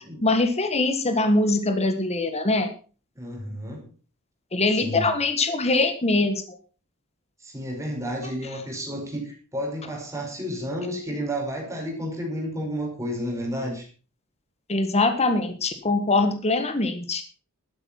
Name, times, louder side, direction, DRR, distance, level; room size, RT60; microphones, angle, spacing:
voice 1, 0.2-2.7 4.5-6.6 14.7-17.2, left 2 dB, 30° left, 8 dB, 1.6 m, -23 dB
voice 2, 3.1-3.9 4.7-5.1 7.4-13.9, equal, 15° right, 1 dB, 5.0 m, -31 dB
12.5 x 10.5 x 5.7 m, 0.37 s
head